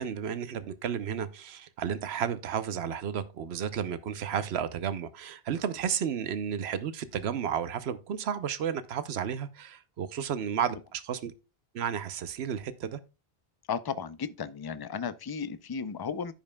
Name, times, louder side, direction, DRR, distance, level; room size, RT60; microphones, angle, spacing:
voice 1, 0.0-11.3 11.7-13.0, right 8 dB, 90° right, 1.0 m, -32 dB
voice 2, 13.7-16.3, left 6 dB, 35° left, 0.4 m, -34 dB
15.0 x 5.4 x 2.2 m
omnidirectional pair, 1.0 m